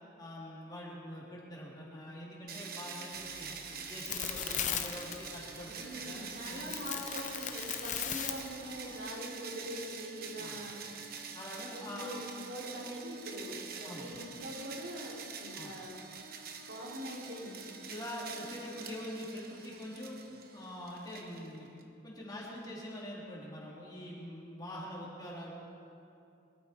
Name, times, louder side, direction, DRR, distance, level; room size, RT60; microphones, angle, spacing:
voice 1, 0.2-3.6 3.9-6.7 10.4-10.6 11.3-12.2 13.8-14.1 15.5-15.7 17.9-20.2 20.5-21.7 22.0-25.5, left 1 dB, 20° left, -6 dB, 3.4 m, -44 dB
sound 1, 2.5-21.8, right 6 dB, 50° right, 1.2 m, -46 dB
sound 2, 3.1-9.0, left 9 dB, 40° left, 0.8 m, -39 dB
voice 2, 5.6-10.9 11.7-16.0 16.6-17.6, equal, 70° right, -4 dB, 3.9 m, -43 dB
23.0 x 13.5 x 4.6 m, 2.7 s
head